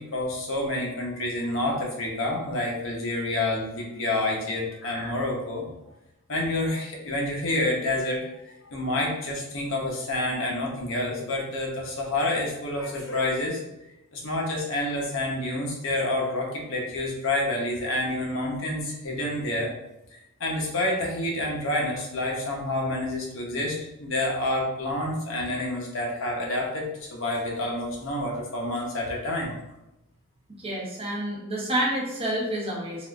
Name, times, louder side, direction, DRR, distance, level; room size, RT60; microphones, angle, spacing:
voice 1, 0.0-5.6 6.3-8.3 8.6-13.6 14.1-19.7 20.1-29.5, left 1 dB, 60° left, -1 dB, 0.7 m, -28 dB
voice 2, 30.6-33.1, right 1 dB, 25° right, -3 dB, 0.6 m, -28 dB
3.6 x 2.3 x 2.3 m, 0.91 s
head